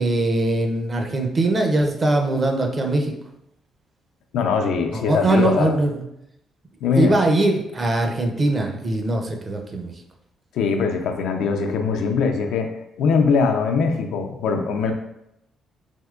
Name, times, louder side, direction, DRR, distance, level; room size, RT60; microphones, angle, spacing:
voice 1, 0.0-3.1 4.9-6.0 6.9-9.9, right 2 dB, 35° right, 3 dB, 0.5 m, -21 dB
voice 2, 4.3-5.8 6.8-7.1 10.5-12.7 13.0-14.9, left 5 dB, 85° left, 4 dB, 0.4 m, -21 dB
3.5 x 2.8 x 2.3 m, 0.82 s
cardioid pair, 90°, 0 cm